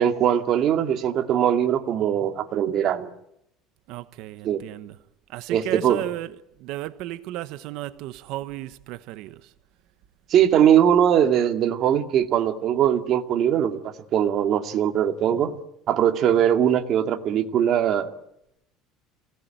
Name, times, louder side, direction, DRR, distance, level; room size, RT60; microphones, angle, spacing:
voice 1, 0.0-3.1 4.4-4.6 5.5-6.0 10.3-13.8 14.1-15.6 15.9-18.1, right 9 dB, 40° right, 2.2 m, -21 dB
voice 2, 3.9-5.0 5.3-9.5, right 15 dB, 60° right, 1.1 m, -34 dB
26.5 x 18.0 x 9.1 m
cardioid pair, 160°, 0 cm